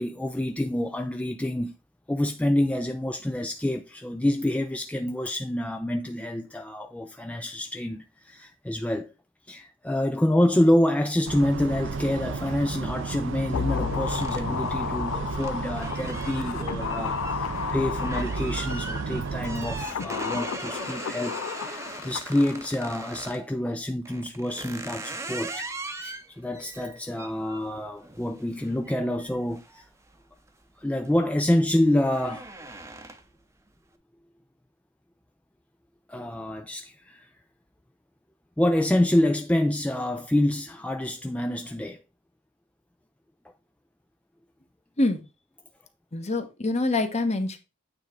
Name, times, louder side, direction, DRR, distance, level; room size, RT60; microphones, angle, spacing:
voice 1, 0.0-1.7 2.1-9.1 9.5-25.7 26.0-29.9 30.8-32.5 36.1-37.3 38.6-42.0, left 1 dB, 5° left, 0.4 m, -27 dB
sound 1, 11.3-19.9, right 4 dB, 65° right, 0.5 m, -33 dB
sound 2, 13.5-19.0 19.6-22.9 23.1-23.2, left 7 dB, 90° left, 0.4 m, -33 dB
sound 3, 14.1-23.5 24.1-30.5 30.9-31.3 31.6-33.4, right 2 dB, 15° right, 0.8 m, -40 dB
voice 2, 46.1-47.6, left 2 dB, 35° left, 1.1 m, -25 dB
8.9 x 3.5 x 5.0 m
head